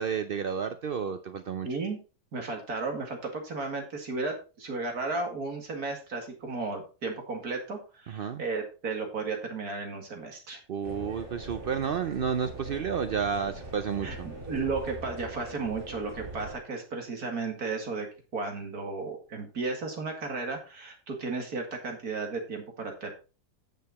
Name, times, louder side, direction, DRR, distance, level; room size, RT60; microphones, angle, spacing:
voice 1, 0.0-1.7 8.1-8.4 10.7-14.3, right 7 dB, 80° right, 9 dB, 0.5 m, -31 dB
voice 2, 1.6-2.0 2.3-10.6 14.0-18.1 18.3-23.1, right 3 dB, 65° right, 3 dB, 2.5 m, -34 dB
sound 1, 10.8-16.6, right 2 dB, 45° right, 3.3 m, -41 dB
8.7 x 6.7 x 4.1 m, 0.33 s
omnidirectional pair, 1.7 m